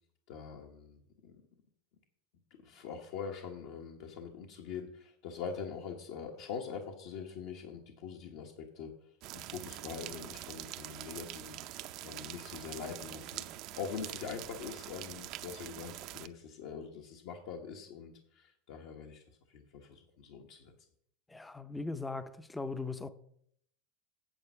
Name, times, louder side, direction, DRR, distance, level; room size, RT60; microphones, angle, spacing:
voice 1, 0.3-1.3 2.6-8.9 9.3-13.4 13.7-20.7, left 6 dB, 70° left, 1.3 m, -43 dB
sound 1, 9.2-16.3, right 14 dB, 50° right, 0.6 m, -45 dB
voice 2, 21.3-23.1, left 3 dB, 10° left, 0.6 m, -39 dB
8.8 x 7.6 x 5.5 m
supercardioid pair, 130°, 0 cm